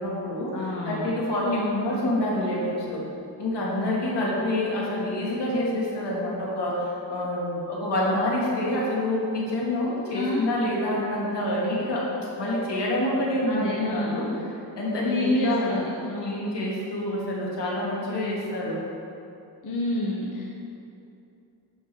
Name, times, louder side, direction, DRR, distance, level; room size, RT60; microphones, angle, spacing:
voice 1, 0.0-3.0 3.4-12.1 12.4-14.3 14.7-15.7 16.2-18.8, left 1 dB, 75° left, -5 dB, 2.4 m, -27 dB
voice 2, 0.5-1.1 1.4-1.7 10.1-10.4 13.5-14.3 15.0-16.4 19.6-20.4, left 1 dB, 45° left, -3 dB, 1.1 m, -28 dB
12.5 x 5.4 x 4.6 m, 2.7 s
wide cardioid pair, 115°, 42 cm